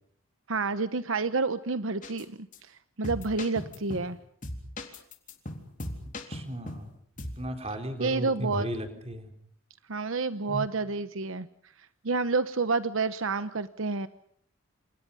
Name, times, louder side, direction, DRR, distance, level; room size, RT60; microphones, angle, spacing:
voice 1, 0.5-4.2 8.0-8.7 9.9-11.5 12.0-14.1, right 4 dB, 70° right, 12 dB, 1.0 m, -29 dB
sound 1, 2.0-2.2 2.5-2.6 3.0-4.1 4.4-6.9 7.2-7.4, left 1 dB, 40° left, 3.7 m, -38 dB
voice 2, 6.3-6.9 7.4-9.3 10.5-10.7, right 1 dB, 30° right, 5 dB, 4.1 m, -35 dB
29.0 x 28.0 x 5.6 m, 0.63 s
head